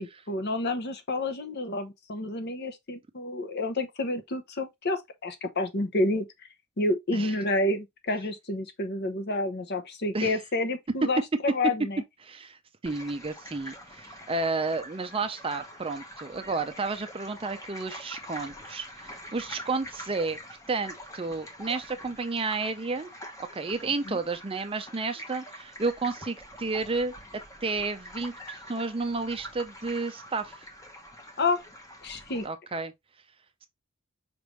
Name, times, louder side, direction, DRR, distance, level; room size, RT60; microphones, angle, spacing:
voice 1, 0.0-6.3 6.8-12.0 24.1-24.2 31.4-31.6 32.0-32.4, left 2 dB, 45° left, 0.8 m, -29 dB
voice 2, 12.2-20.4 20.7-23.1 23.5-27.1 27.6-30.6 32.4-32.9, right 3 dB, 25° right, 0.5 m, -32 dB
sound 1, 12.8-32.5, equal, 15° left, 0.9 m, -45 dB
5.1 x 3.3 x 3.1 m
head